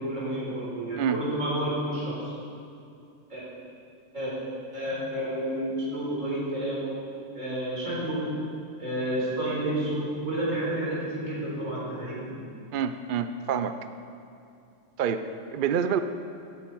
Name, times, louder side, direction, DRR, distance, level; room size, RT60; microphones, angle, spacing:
voice 1, 0.0-2.3 3.3-3.4 4.1-4.3 4.7-7.0 7.3-8.4 8.8-12.4, right 1 dB, 85° right, -6 dB, 4.4 m, -30 dB
voice 2, 12.7-13.8 15.0-16.0, right 8 dB, 55° right, 10 dB, 0.6 m, -27 dB
16.5 x 9.3 x 4.5 m, 2.5 s
omnidirectional pair, 1.3 m